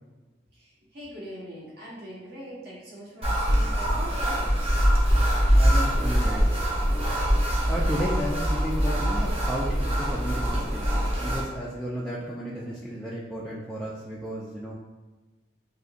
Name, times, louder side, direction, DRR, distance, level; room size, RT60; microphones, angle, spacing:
voice 1, 0.6-4.5, equal, 60° right, -6 dB, 1.2 m, -42 dB
sound 1, 3.2-11.4, equal, 35° right, 0.7 m, -23 dB
voice 2, 5.5-6.4 7.6-10.9 11.2-14.7, equal, 5° left, -7 dB, 0.3 m, -33 dB
3.9 x 2.5 x 2.4 m, 1.2 s
head